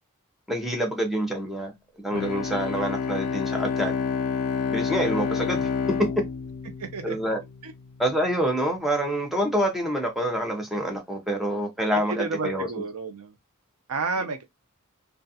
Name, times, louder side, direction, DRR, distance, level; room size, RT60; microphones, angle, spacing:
voice 1, 0.5-1.7 2.0-4.0 4.7-5.7 7.0-7.4 8.0-12.7, right 1 dB, ahead, 0.6 m, -27 dB
Bowed string instrument, 2.1-7.7, left 5 dB, 85° left, 0.5 m, -29 dB
voice 2, 6.8-7.2 7.6-7.7 12.1-13.3 13.9-14.4, right 4 dB, 75° right, 0.6 m, -31 dB
2.4 x 2.3 x 2.6 m
head